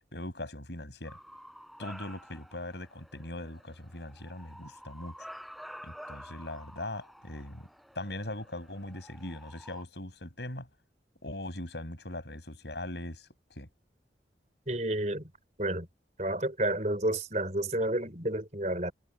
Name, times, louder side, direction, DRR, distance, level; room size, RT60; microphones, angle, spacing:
voice 1, 0.1-1.2 1.8-5.3 5.8-7.7 7.9-10.7 11.2-13.7, left 1 dB, 75° left, 6.8 m, -40 dB
Bark / Motor vehicle (road) / Siren, 1.1-9.8, equal, ahead, 4.0 m, -50 dB
voice 2, 14.7-15.3 15.6-15.9 16.2-18.9, right 1 dB, 40° right, 4.9 m, -30 dB
head